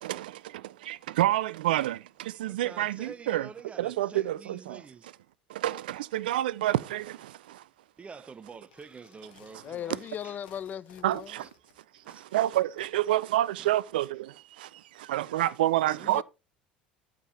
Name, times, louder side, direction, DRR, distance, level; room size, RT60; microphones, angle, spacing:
voice 1, 0.0-3.5 3.8-5.1 5.5-7.7 9.5-9.6 11.0-11.5 11.9-16.2, right 14 dB, 70° right, 0.4 m, -29 dB
voice 2, 2.5-5.1 8.0-10.4 11.4-11.5 12.0-12.3 13.6-13.7, right 5 dB, 25° right, 0.8 m, -47 dB
sound 1, 8.6-12.9, left 8 dB, 70° left, 1.9 m, -59 dB
voice 3, 9.6-11.3 16.0-16.2, left 9 dB, 35° left, 0.5 m, -38 dB
12.5 x 5.0 x 4.2 m
figure-of-eight pair, 70°, 5 cm